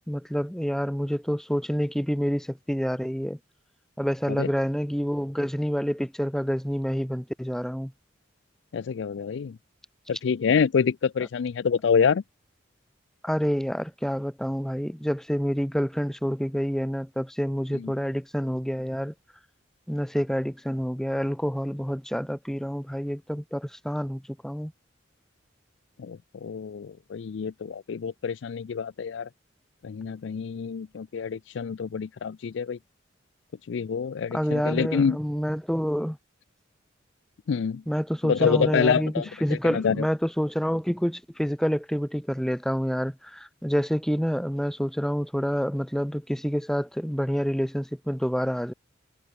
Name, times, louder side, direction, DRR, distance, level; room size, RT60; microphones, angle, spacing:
voice 1, 0.1-3.4 4.0-7.9 13.2-19.1 19.9-24.7 34.3-36.2 37.9-48.7, equal, ahead, 1.3 m, -28 dB
voice 2, 8.7-9.6 10.2-12.2 17.8-17.9 26.0-29.3 29.8-32.8 33.7-35.2 37.5-37.8 38.2-40.0, left 6 dB, 70° left, 0.4 m, -27 dB
head